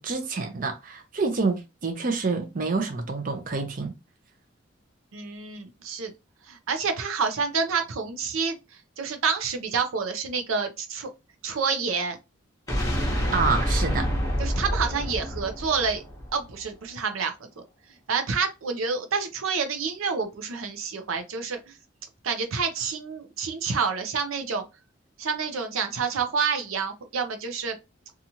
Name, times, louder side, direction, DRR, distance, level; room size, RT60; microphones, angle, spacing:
voice 1, 0.0-3.9 13.3-14.1, right 4 dB, 40° right, 0.5 m, -27 dB
voice 2, 5.1-6.1 6.5-8.6 9.0-11.1 11.4-12.2 14.4-16.0 16.3-17.3 18.1-21.7 22.2-24.6 25.2-27.8, right 5 dB, 90° right, 0.5 m, -28 dB
sound 1, 12.7-16.6, equal, 15° left, 0.8 m, -27 dB
2.8 x 2.4 x 2.7 m
head